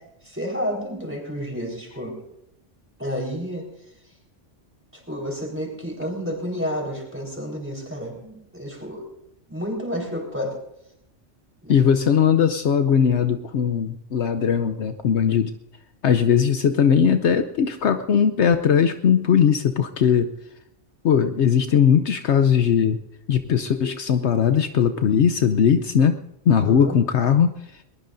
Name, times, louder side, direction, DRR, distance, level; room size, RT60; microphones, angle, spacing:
voice 1, 0.2-2.2 3.0-3.6 4.9-9.0 9.5-10.6 11.6-11.8 26.6-27.0, equal, 10° right, 0 dB, 4.3 m, -30 dB
voice 2, 11.7-15.5 16.0-20.3 21.0-23.0 23.3-26.2 26.5-27.6, left 7 dB, 70° left, 9 dB, 1.0 m, -19 dB
21.5 x 20.0 x 2.6 m, 0.79 s
omnidirectional pair, 1.3 m